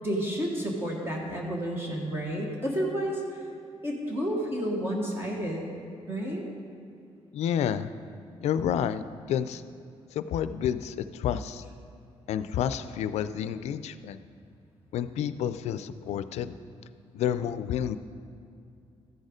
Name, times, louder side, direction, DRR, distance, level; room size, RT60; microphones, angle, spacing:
voice 1, 0.0-3.2 3.8-5.7 6.1-6.4, equal, 20° right, -2 dB, 1.3 m, -30 dB
voice 2, 7.3-7.9 8.4-9.6 10.1-11.6 12.3-14.2 14.9-16.6 17.1-18.0, left 9 dB, 90° left, 13 dB, 0.4 m, -30 dB
13.5 x 6.5 x 5.1 m, 2.6 s
wide cardioid pair, 165°, 11 cm